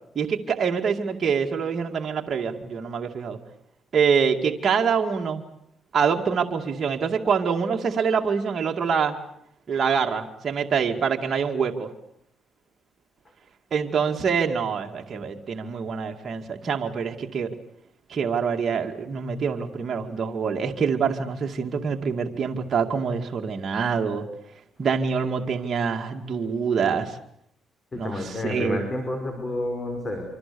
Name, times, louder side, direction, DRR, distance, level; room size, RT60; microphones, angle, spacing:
voice 1, 0.2-3.4 3.9-5.4 5.9-9.1 9.7-11.9 13.7-17.5 18.1-24.2 24.8-27.2 27.9-28.8, right 6 dB, 45° right, 2 dB, 2.3 m, -25 dB
voice 2, 27.9-30.2, left 1 dB, 30° left, 5 dB, 5.3 m, -30 dB
27.0 x 25.5 x 7.0 m, 0.74 s
cardioid pair, 90°, 0 cm